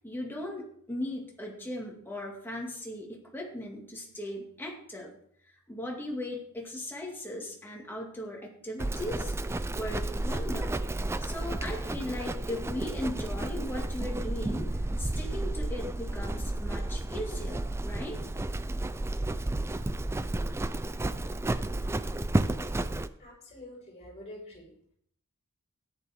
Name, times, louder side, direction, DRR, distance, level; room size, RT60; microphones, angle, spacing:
voice 1, 0.0-5.1 5.4-9.3 9.7-10.8 11.2-14.7 15.0-18.2, left 1 dB, 10° left, -1 dB, 2.3 m, -38 dB
Livestock farm animals working animals, 8.8-23.1, right 1 dB, 10° right, 0.3 m, -32 dB
voice 2, 23.2-24.7, left 1 dB, 30° left, -2 dB, 5.4 m, -46 dB
13.5 x 10.0 x 3.7 m, 0.66 s
head